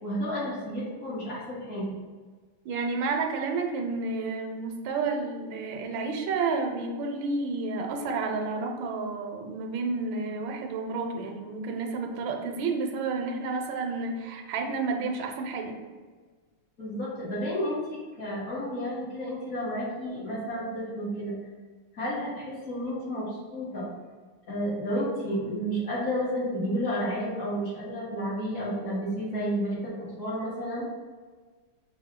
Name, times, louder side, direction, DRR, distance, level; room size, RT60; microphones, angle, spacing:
voice 1, 0.0-2.0 16.8-21.4 21.9-23.9 24.5-30.9, equal, 45° left, -7 dB, 1.5 m, -31 dB
voice 2, 2.6-15.8, right 4 dB, 75° right, 3 dB, 1.3 m, -30 dB
5.6 x 2.3 x 3.6 m, 1.4 s
omnidirectional pair, 2.2 m